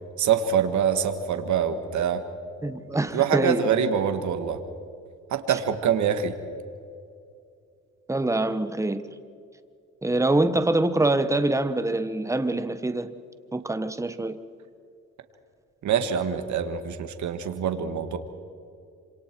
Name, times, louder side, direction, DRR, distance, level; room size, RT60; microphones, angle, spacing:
voice 1, 0.2-2.2 3.1-4.6 5.3-6.4 15.8-18.2, right 8 dB, 70° right, 8 dB, 1.8 m, -25 dB
voice 2, 2.6-3.7 8.1-9.0 10.0-13.1 13.5-14.4, right 2 dB, 10° right, 11 dB, 1.3 m, -25 dB
27.0 x 26.0 x 4.7 m, 2.4 s
cardioid pair, 90°, 30 cm